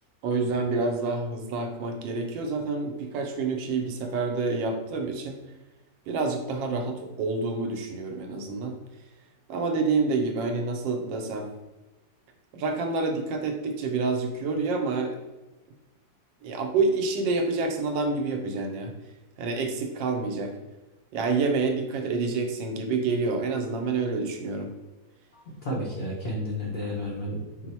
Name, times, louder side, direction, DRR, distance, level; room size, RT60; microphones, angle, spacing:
voice 1, 0.2-5.4 6.1-8.7 9.5-11.5 12.5-15.2 16.4-18.9 19.4-20.5 21.1-24.7, right 3 dB, 85° right, 4 dB, 1.3 m, -28 dB
voice 2, 25.6-27.7, equal, 70° left, -3 dB, 0.5 m, -32 dB
4.6 x 2.1 x 4.2 m, 1.1 s
omnidirectional pair, 1.9 m